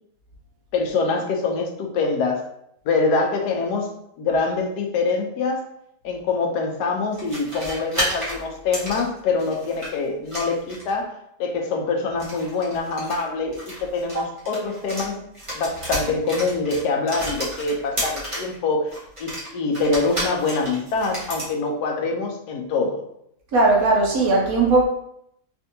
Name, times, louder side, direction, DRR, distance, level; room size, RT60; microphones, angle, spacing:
voice 1, 0.7-2.5 2.9-3.9 4.2-5.6 6.0-15.1 15.5-23.1, left 3 dB, 85° left, 2 dB, 1.2 m, -24 dB
sound 1, 7.1-9.9 10.3-11.0 12.1-15.1 15.3-18.5 18.9-21.5, right 1 dB, 25° right, 0.9 m, -31 dB
voice 2, 23.5-24.8, right 2 dB, 70° right, -1 dB, 1.0 m, -18 dB
3.5 x 2.5 x 2.6 m, 0.75 s
omnidirectional pair, 1.7 m